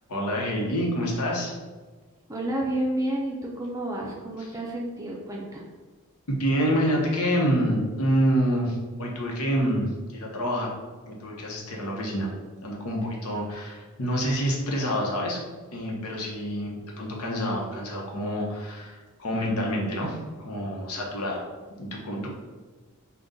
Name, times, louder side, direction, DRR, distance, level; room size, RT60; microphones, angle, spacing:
voice 1, 0.1-1.5 6.3-10.7 11.0-12.3 12.6-15.4 15.7-21.5 21.8-22.3, equal, 85° left, -1 dB, 0.9 m, -27 dB
voice 2, 2.3-5.6, right 1 dB, 15° right, -2 dB, 0.4 m, -30 dB
3.9 x 2.3 x 3.7 m, 1.3 s
head